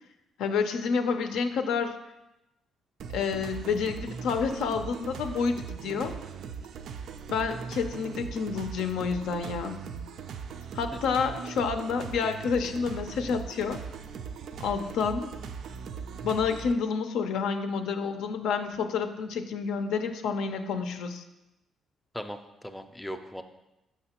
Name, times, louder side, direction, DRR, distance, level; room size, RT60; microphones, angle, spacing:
voice 1, 0.4-2.0 3.1-6.1 7.3-9.8 10.7-13.8 14.6-15.3 16.2-21.2, left 5 dB, 85° left, 7 dB, 0.5 m, -29 dB
sound 1, 3.0-16.7, right 6 dB, 70° right, 0.3 m, -39 dB
voice 2, 22.1-23.4, equal, 5° left, 7 dB, 0.4 m, -38 dB
6.0 x 5.7 x 2.9 m, 0.94 s
cardioid pair, 90°, 0 cm